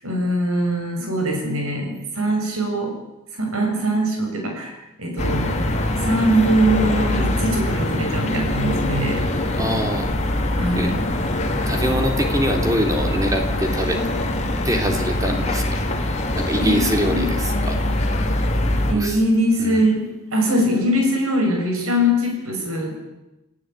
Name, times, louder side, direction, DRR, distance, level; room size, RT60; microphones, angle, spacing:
voice 1, 0.0-2.9 3.3-4.7 5.0-5.6 6.0-9.2 10.6-11.0 16.6-17.3 18.9-23.0, equal, 75° right, 2 dB, 7.1 m, -22 dB
sound 1, 5.2-18.9, left 1 dB, 30° left, 2.8 m, -23 dB
voice 2, 9.6-10.1 10.8-10.9 11.7-14.0 14.6-15.8 16.3-17.8 18.9-19.2 19.6-19.8, equal, 15° right, 3 dB, 3.5 m, -24 dB
29.5 x 16.5 x 9.2 m, 0.98 s
head